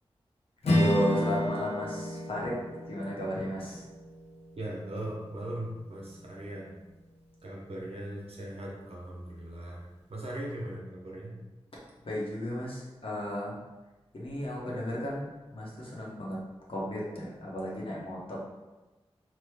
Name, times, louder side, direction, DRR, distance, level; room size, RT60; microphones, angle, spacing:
Strum, 0.6-5.3, left 1 dB, 85° left, 0.6 m, -31 dB
voice 1, 0.6-2.6 2.9-3.8 12.0-13.6 14.1-16.4 16.7-18.4, equal, 60° left, -5 dB, 0.9 m, -34 dB
voice 2, 4.5-6.7 7.4-11.4, right 1 dB, 70° right, -3 dB, 0.8 m, -39 dB
3.0 x 2.1 x 3.4 m, 1.1 s
wide cardioid pair, 75°, 10 cm